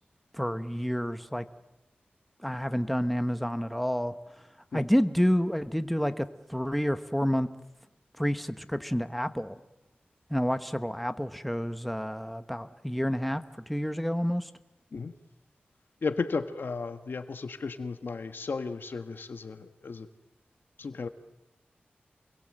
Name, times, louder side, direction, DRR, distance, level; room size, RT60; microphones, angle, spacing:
voice 1, 0.4-1.4 2.4-4.1 4.7-6.2 6.5-7.5 8.2-9.6 10.3-13.4 13.7-14.4, equal, ahead, 10 dB, 1.1 m, -29 dB
voice 2, 16.0-20.1 20.8-21.1, left 4 dB, 70° left, 9 dB, 1.4 m, -34 dB
28.5 x 22.0 x 7.7 m, 0.95 s
wide cardioid pair, 65°, 4 cm